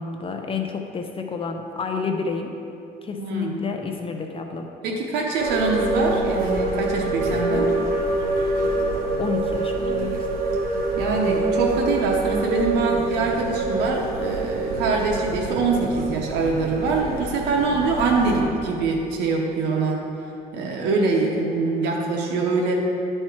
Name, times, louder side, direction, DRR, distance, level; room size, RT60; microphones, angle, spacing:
voice 1, 0.0-2.6 3.0-4.7 8.9-10.5, left 5 dB, 35° left, 4 dB, 0.6 m, -30 dB
voice 2, 3.2-3.6 4.8-7.7 11.0-20.0 20.5-22.7, right 3 dB, 85° right, 0 dB, 0.9 m, -24 dB
sound 1, 5.4-18.4, right 2 dB, 60° right, 1.5 m, -25 dB
11.5 x 4.4 x 4.5 m, 2.7 s
cardioid pair, 110°, 17 cm